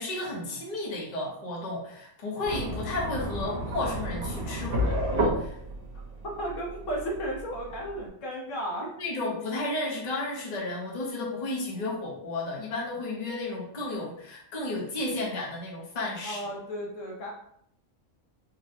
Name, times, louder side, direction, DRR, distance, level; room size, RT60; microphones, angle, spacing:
voice 1, 0.0-5.5 9.0-16.5, left 2 dB, 40° left, -4 dB, 0.8 m, -33 dB
sound 1, 2.4-8.1, equal, 45° right, 0.9 m, -32 dB
voice 2, 6.2-8.9 16.2-17.3, right 1 dB, 70° left, -2 dB, 1.1 m, -34 dB
4.0 x 2.1 x 2.6 m, 0.69 s
omnidirectional pair, 1.4 m